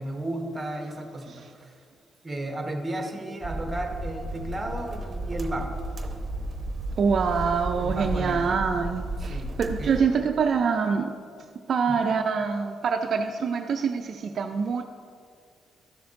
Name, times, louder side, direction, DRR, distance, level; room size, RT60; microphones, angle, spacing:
voice 1, 0.0-1.7 2.2-5.7 7.8-8.6 9.2-9.5 9.8-10.3 11.9-12.1, right 1 dB, 20° right, 1.1 m, -34 dB
sound 1, 3.4-10.0, right 1 dB, 35° right, 0.9 m, -33 dB
voice 2, 7.0-11.2 11.7-14.8, right 5 dB, 55° right, 0.4 m, -25 dB
12.5 x 6.8 x 2.6 m
cardioid pair, 90°, 0 cm